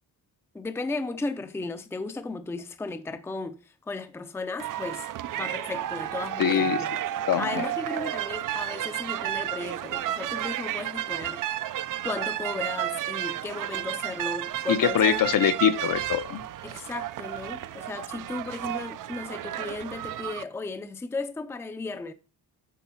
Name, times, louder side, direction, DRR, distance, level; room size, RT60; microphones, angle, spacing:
voice 1, 0.5-5.1 5.4-6.9 7.4-11.4 12.0-15.2 16.6-22.1, left 3 dB, 5° left, 0.5 m, -35 dB
sound 1, 4.6-20.4, right 12 dB, 55° right, 0.5 m, -32 dB
voice 2, 6.4-6.8 7.3-7.7 14.7-16.4, left 9 dB, 60° left, 0.8 m, -23 dB
9.3 x 4.2 x 5.6 m
wide cardioid pair, 170°, 38 cm